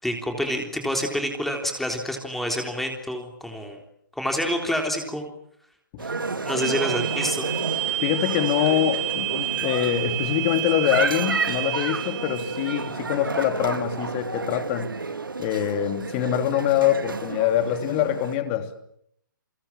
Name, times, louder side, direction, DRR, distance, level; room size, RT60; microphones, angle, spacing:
voice 1, 0.0-3.8 4.2-5.2 6.0-6.1 6.4-7.5, equal, ahead, 2 dB, 3.5 m, -28 dB
sound 1, 6.0-18.4, right 4 dB, 80° right, 2.3 m, -31 dB
sound 2, 6.6-12.9, right 13 dB, 20° right, 2.6 m, -30 dB
voice 2, 8.0-14.9 15.4-18.7, left 11 dB, 30° left, 8 dB, 3.1 m, -24 dB
28.5 x 25.0 x 7.4 m, 0.72 s
figure-of-eight pair, 135°, 11 cm